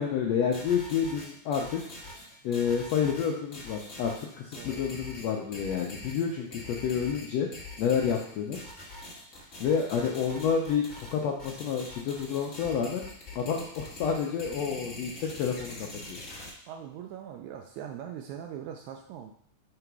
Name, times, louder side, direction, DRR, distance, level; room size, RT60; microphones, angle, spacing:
voice 1, 0.0-1.8 2.4-7.5 7.8-8.6 9.6-13.0 13.3-16.2, left 7 dB, 80° left, 0 dB, 1.5 m, -29 dB
sound 1, 0.5-16.5, left 2 dB, 45° left, 1.0 m, -44 dB
voice 2, 10.2-10.5 16.7-19.3, right 9 dB, 80° right, 4 dB, 1.7 m, -41 dB
5.7 x 3.9 x 4.6 m, 0.64 s
omnidirectional pair, 3.7 m